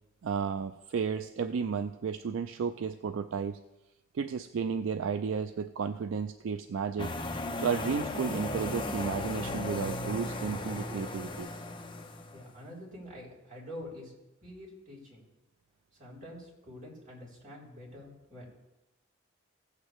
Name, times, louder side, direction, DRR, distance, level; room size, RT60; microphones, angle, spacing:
voice 1, 0.2-3.6 4.1-7.1 7.6-11.5, right 6 dB, 70° right, 9 dB, 0.4 m, -33 dB
sound 1, 7.0-12.5, left 2 dB, 25° left, 0.7 m, -36 dB
voice 2, 12.3-14.1 14.4-15.3 15.9-18.5, left 1 dB, 40° right, -4 dB, 4.0 m, -46 dB
16.0 x 8.1 x 3.1 m, 0.99 s
head